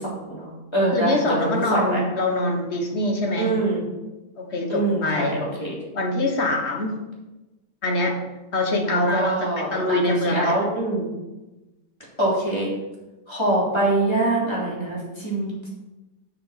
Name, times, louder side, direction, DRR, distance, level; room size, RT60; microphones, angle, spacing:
voice 1, 0.0-2.0 3.4-3.8 4.7-5.8 8.9-11.1 12.2-12.7 13.3-15.7, right 2 dB, 15° left, -5 dB, 3.2 m, -24 dB
voice 2, 0.9-3.6 4.4-5.4 5.9-7.0 7.8-8.2 8.5-10.6, left 1 dB, 40° left, 2 dB, 1.3 m, -24 dB
6.9 x 6.8 x 6.5 m, 1.1 s
omnidirectional pair, 2.1 m